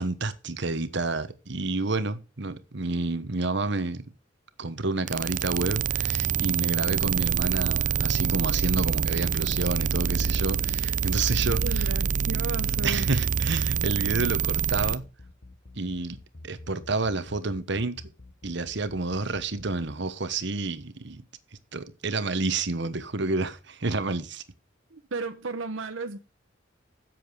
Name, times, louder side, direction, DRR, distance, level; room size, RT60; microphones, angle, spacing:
voice 1, 0.0-4.0 4.6-11.9 12.8-15.0 15.7-16.2 16.4-18.0 18.4-21.2 21.7-24.4, right 3 dB, 65° right, 1.2 m, -29 dB
sound 1, 5.1-15.0, right 6 dB, 40° right, 0.5 m, -26 dB
voice 2, 11.6-13.1 24.9-26.2, right 3 dB, 90° right, 0.9 m, -34 dB
sound 2, 15.0-19.9, left 2 dB, 50° left, 1.2 m, -47 dB
10.5 x 7.7 x 6.2 m
head